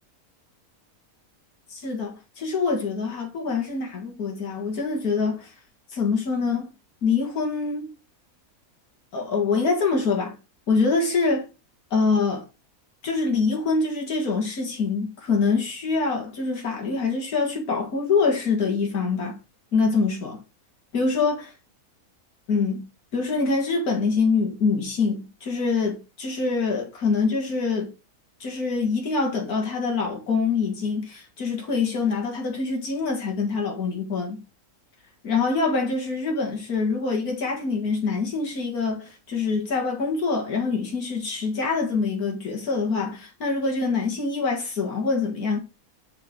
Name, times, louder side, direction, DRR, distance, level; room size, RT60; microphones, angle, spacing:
voice 1, 1.7-5.5 5.9-6.7 7.0-7.9 9.1-10.3 10.7-11.5 11.9-12.4 13.0-19.4 19.7-20.4 20.9-21.4 22.5-22.9 23.1-27.9 28.4-34.4 35.2-45.6, left 4 dB, 90° left, 2.2 m, -25 dB
5.9 x 4.9 x 3.7 m
omnidirectional pair, 1.5 m